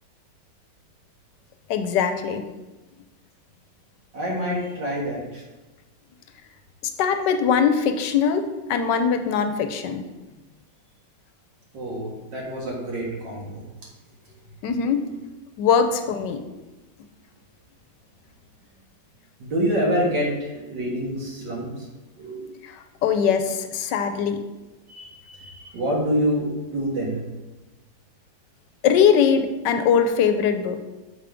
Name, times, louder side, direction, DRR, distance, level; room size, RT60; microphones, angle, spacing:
voice 1, 1.7-2.4 7.0-8.4 8.7-10.0 14.6-15.0 15.6-16.4 22.6-24.4 28.8-30.9, left 7 dB, 85° left, 7 dB, 1.2 m, -21 dB
voice 2, 4.1-5.4 11.7-13.6 19.4-21.9 22.2-22.4 24.9-27.2, equal, 80° right, -4 dB, 2.1 m, -27 dB
7.2 x 3.5 x 5.1 m, 1.1 s
omnidirectional pair, 1.9 m